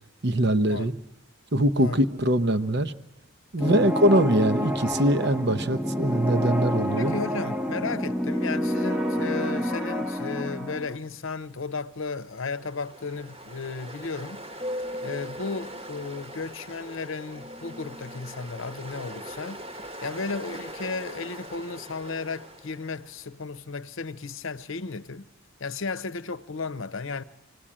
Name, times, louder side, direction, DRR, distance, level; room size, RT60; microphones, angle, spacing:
voice 1, 0.2-0.9 1.5-2.9 3.5-7.2, right 1 dB, 50° right, 0.9 m, -22 dB
voice 2, 3.6-3.9 7.0-14.4 15.0-19.7 20.0-25.3 25.6-27.2, left 4 dB, 65° left, 0.8 m, -34 dB
sound 1, 3.6-11.0, equal, 5° right, 1.0 m, -28 dB
Ocean, 12.0-23.1, equal, 25° right, 1.2 m, -40 dB
26.0 x 19.0 x 8.8 m
head